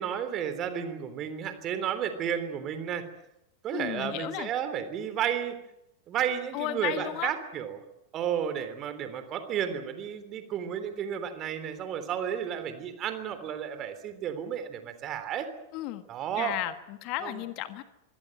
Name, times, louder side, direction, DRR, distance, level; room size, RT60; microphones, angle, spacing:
voice 1, 0.0-3.0 3.6-5.5 6.1-7.8 8.1-15.5 16.1-16.5 17.2-17.4, right 9 dB, 30° right, 10 dB, 3.4 m, -32 dB
voice 2, 3.7-4.5 6.5-7.3 15.7-16.1 16.4-17.8, left 15 dB, 40° left, 11 dB, 1.5 m, -34 dB
25.0 x 17.5 x 9.1 m, 0.86 s
figure-of-eight pair, 90°, 0 cm